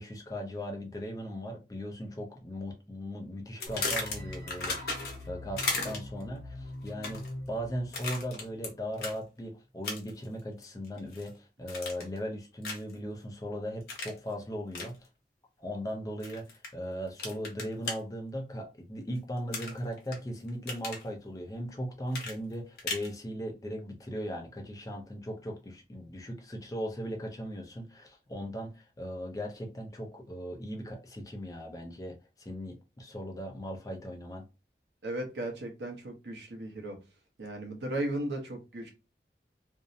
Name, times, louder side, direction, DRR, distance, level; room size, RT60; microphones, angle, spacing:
voice 1, 0.0-15.0 15.6-34.4, equal, 20° left, 0.4 m, -38 dB
sound 1, 3.6-5.3 5.6-6.2 6.9-7.3 7.9-8.7 9.0-9.2 9.8-10.2 10.6-11.3 11.7-12.2 12.6-12.9 13.9-14.2 14.7-14.9 16.2-16.7 17.2-18.0 19.5-20.2 20.5-21.0 22.1-23.1, left 3 dB, 60° left, 0.8 m, -35 dB
sound 2, 3.7-8.8, left 1 dB, 85° left, 0.8 m, -44 dB
voice 2, 35.0-37.0 37.4-38.9, right 1 dB, 80° right, 0.7 m, -36 dB
2.6 x 2.0 x 2.5 m
head